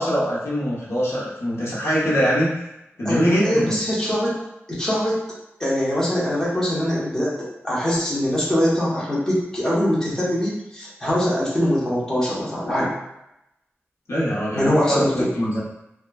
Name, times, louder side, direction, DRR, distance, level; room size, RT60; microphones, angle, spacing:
voice 1, 0.0-2.5 3.0-3.8 14.1-15.6, equal, 70° left, -7 dB, 0.8 m, -22 dB
voice 2, 3.0-4.4 4.7-5.2 5.6-12.9 14.5-15.3, equal, 10° left, -7 dB, 0.9 m, -23 dB
2.9 x 2.2 x 2.3 m, 0.87 s
wide cardioid pair, 80°, 5 cm